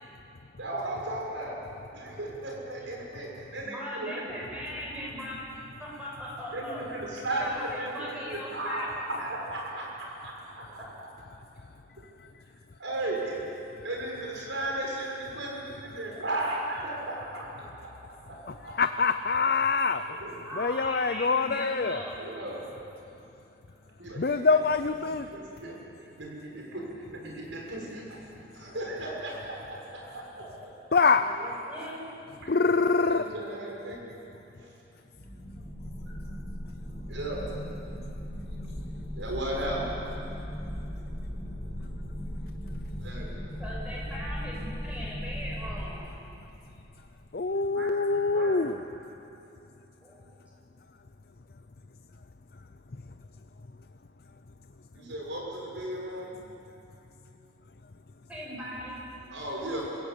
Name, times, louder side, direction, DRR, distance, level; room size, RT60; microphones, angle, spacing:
voice 1, 0.6-1.6 1.9-4.2 6.5-11.1 12.0-12.1 12.8-13.5 13.8-18.8 20.0-20.4 22.2-22.7 24.0-24.6 25.1-25.8 26.2-30.7 31.1-31.8 32.4-32.5 33.1-34.1 34.5-34.7 37.1-37.5 39.1-39.9 43.0-43.5 47.5-48.6 54.9-56.3 59.3-60.0, right 1 dB, 80° right, -2 dB, 6.2 m, -36 dB
voice 2, 3.6-5.4 5.8-6.9 7.4-9.0 10.2-10.3 10.6-10.9 16.1-16.2 17.6-17.7 18.4-18.5 20.4-22.2 31.1-31.9 43.6-46.0 50.0-50.2 58.3-59.0, equal, 5° right, -5 dB, 6.7 m, -39 dB
voice 3, 18.7-20.0 20.6-22.0 24.2-25.3 30.9-31.3 32.5-33.2 47.3-48.8, left 4 dB, 50° left, 9 dB, 0.5 m, -24 dB
sound 1, 35.1-45.9, equal, 10° left, 3.6 m, -37 dB
26.0 x 16.5 x 8.6 m, 2.8 s
head